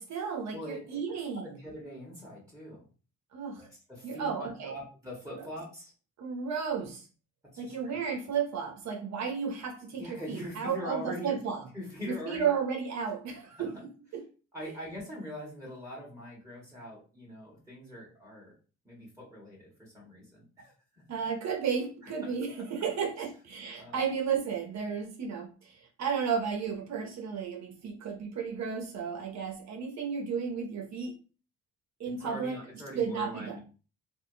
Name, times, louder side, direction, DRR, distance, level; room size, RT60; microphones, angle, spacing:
voice 1, 0.0-1.4 3.3-3.7 4.0-4.7 5.4-5.5 6.2-7.1 7.6-11.6 12.1-13.7 14.1-14.2 21.1-31.1 32.0-32.6 32.9-33.6, right 6 dB, 65° right, 2 dB, 1.0 m, -33 dB
voice 2, 0.5-1.0 1.4-2.9 3.6-5.9 7.5-8.0 10.0-11.4 11.7-12.5 13.4-13.7 14.5-18.5 18.8-21.0 23.2-23.3 23.8-24.0 32.0-33.6, equal, 10° right, -4 dB, 1.9 m, -43 dB
3.5 x 2.5 x 3.4 m, 0.36 s
cardioid pair, 90°, 30 cm